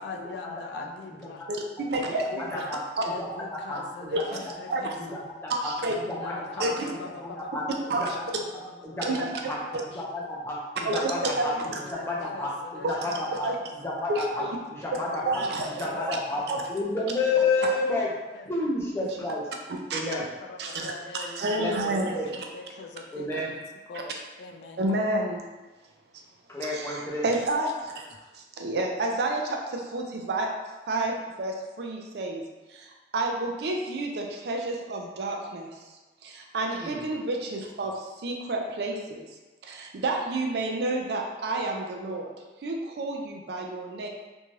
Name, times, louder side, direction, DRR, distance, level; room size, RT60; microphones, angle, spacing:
voice 1, 0.0-1.4 2.3-2.7 3.0-5.2 6.0-9.1 9.6-10.0 11.6-13.7 15.0-17.9 18.3-18.7 20.0-24.8, left 3 dB, 70° left, 3 dB, 0.3 m, -43 dB
voice 2, 1.5-2.5 4.1-4.9 5.5-5.9 6.6-6.9 7.9-8.2 9.1-9.5 10.8-11.8 12.8-13.0 13.4-13.5 14.1-14.6 15.2-16.2 16.5-16.6 19.0-19.3 19.9-20.0 20.6-22.1 24.8-25.4 26.6-28.1 28.3-30.5 30.9-35.7 36.2-39.3 39.6-42.3 42.6-44.1, right 2 dB, 65° right, 1 dB, 0.4 m, -30 dB
voice 3, 3.7-4.4 5.0-5.7 6.1-6.7 7.2-7.6 8.0-8.1 8.8-9.6 9.8-11.5 11.9-13.5 13.8-16.4 16.7-18.1 18.5-19.5 19.9-20.2 21.6-22.3 23.1-23.5 26.5-27.3 36.8-37.0, left 2 dB, 15° left, -5 dB, 0.5 m, -30 dB
2.6 x 2.3 x 3.1 m, 1.2 s
head